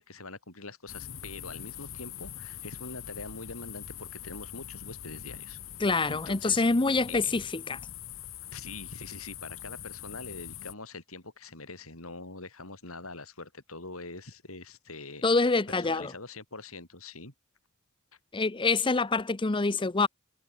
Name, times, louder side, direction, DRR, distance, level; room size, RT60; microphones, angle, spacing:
voice 1, 0.0-5.6 6.1-6.6 7.1-7.5 8.5-17.3, left 3 dB, 90° left, 6.8 m, -44 dB
sound 1, 0.9-10.7, left 10 dB, 70° left, 1.6 m, -43 dB
voice 2, 5.8-7.8 15.2-16.1 18.3-20.1, left 3 dB, 25° left, 0.7 m, -26 dB
head